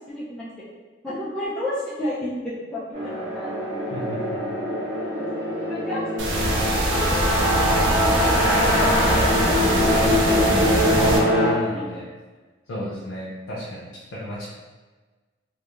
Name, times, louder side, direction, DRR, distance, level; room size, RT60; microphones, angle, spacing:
voice 1, 0.1-0.5 1.0-2.8 3.3-3.5 5.7-6.0 6.4-9.3 11.7-11.8, left 1 dB, 5° left, -10 dB, 0.4 m, -31 dB
sound 1, 2.9-11.5, left 1 dB, 35° right, 0.8 m, -23 dB
sound 2, 6.2-11.2, right 1 dB, 85° right, 0.5 m, -23 dB
voice 2, 9.9-12.1 12.7-14.5, equal, 85° left, -7 dB, 0.5 m, -32 dB
2.4 x 2.1 x 3.0 m, 1.3 s
head